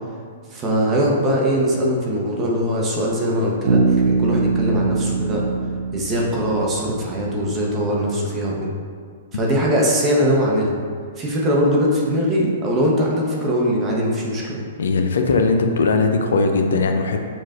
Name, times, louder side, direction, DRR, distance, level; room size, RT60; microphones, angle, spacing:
voice 1, 0.5-5.4 5.9-8.7 9.3-10.8 11.2-14.6, equal, 25° right, -3 dB, 0.8 m, -21 dB
Bass guitar, 3.7-7.4, right 4 dB, 70° right, 0.4 m, -22 dB
voice 2, 14.8-17.2, left 3 dB, 75° left, 5 dB, 0.4 m, -19 dB
6.3 x 2.4 x 2.4 m, 2.1 s
hypercardioid pair, 120°, 0 cm